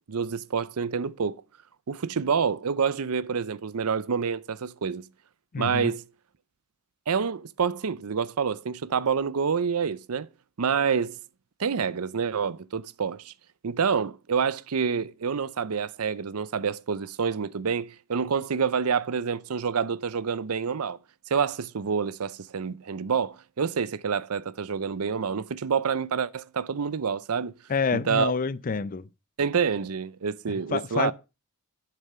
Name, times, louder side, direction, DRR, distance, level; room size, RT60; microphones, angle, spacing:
voice 1, 0.1-1.4 1.9-5.0 5.6-6.0 7.1-10.3 10.6-11.2 11.6-13.3 13.6-21.0 21.3-27.5 27.9-28.3 29.4-31.1, right 6 dB, 85° right, 0.6 m, -27 dB
voice 2, 5.5-5.9 27.7-29.0 30.7-31.1, left 5 dB, 40° left, 0.5 m, -27 dB
11.0 x 6.8 x 5.6 m
head